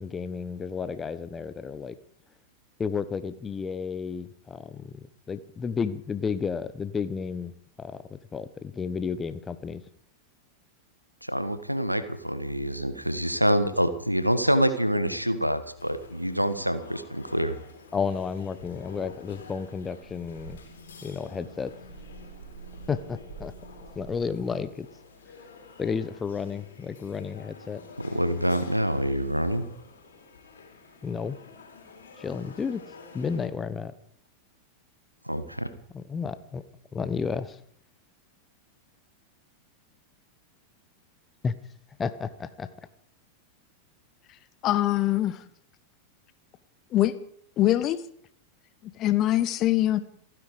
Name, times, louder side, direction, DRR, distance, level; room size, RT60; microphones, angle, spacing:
voice 1, 0.0-2.0 2.8-5.0 5.3-7.5 7.8-9.8 17.9-20.6 21.0-21.7 22.9-23.5 23.9-24.9 25.8-27.8 31.0-31.4 32.2-32.8 33.1-33.9 35.9-36.6 36.9-37.6 41.4-41.5 42.0-42.7, left 5 dB, 20° left, 14 dB, 1.1 m, -32 dB
voice 2, 11.2-17.5 28.0-29.6 35.2-35.7, equal, 90° right, 11 dB, 1.4 m, -26 dB
sound 1, 15.7-33.5, left 4 dB, 65° left, 3.9 m, -50 dB
sound 2, 19.7-24.6, right 3 dB, 70° right, 3.9 m, -47 dB
voice 3, 44.6-45.4 46.9-47.1 47.6-48.0 49.0-50.0, left 14 dB, 35° left, 14 dB, 1.1 m, -23 dB
28.0 x 9.9 x 5.0 m, 0.65 s
figure-of-eight pair, 90°, 0 cm